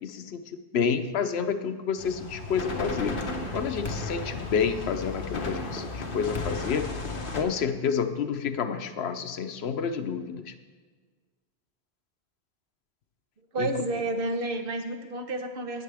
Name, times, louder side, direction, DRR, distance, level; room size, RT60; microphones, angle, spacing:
voice 1, 0.0-0.4 0.7-3.2 3.5-6.9 7.3-10.5 13.6-13.7, left 6 dB, 75° left, 9 dB, 0.9 m, -29 dB
sound 1, 2.0-7.4, left 2 dB, 55° left, 1.3 m, -34 dB
voice 2, 13.5-15.8, right 2 dB, 60° right, 5 dB, 1.1 m, -30 dB
17.5 x 6.6 x 3.4 m, 1.5 s
omnidirectional pair, 1.1 m